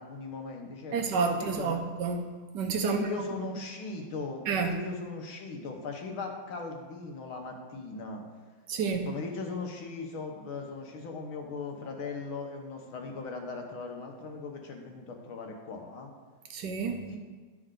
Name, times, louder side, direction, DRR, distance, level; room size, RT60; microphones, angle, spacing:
voice 1, 0.0-1.8 2.8-8.2 9.1-16.1 17.1-17.2, left 4 dB, 75° left, 2 dB, 1.9 m, -39 dB
voice 2, 0.9-2.3 2.5-3.1 4.5-4.8 8.7-9.1 16.5-17.1, right 5 dB, 65° right, 4 dB, 1.2 m, -29 dB
12.5 x 4.4 x 3.8 m, 1.4 s
omnidirectional pair, 2.3 m